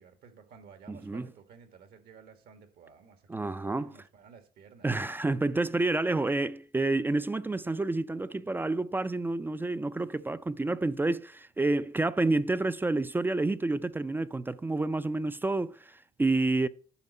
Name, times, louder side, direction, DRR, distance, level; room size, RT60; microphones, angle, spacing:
voice 1, 0.0-4.9, right 6 dB, 70° right, 1.7 m, -54 dB
voice 2, 0.9-1.3 3.3-4.0 4.8-16.7, right 2 dB, 10° right, 0.3 m, -29 dB
11.0 x 5.0 x 5.4 m
cardioid pair, 110°, 17 cm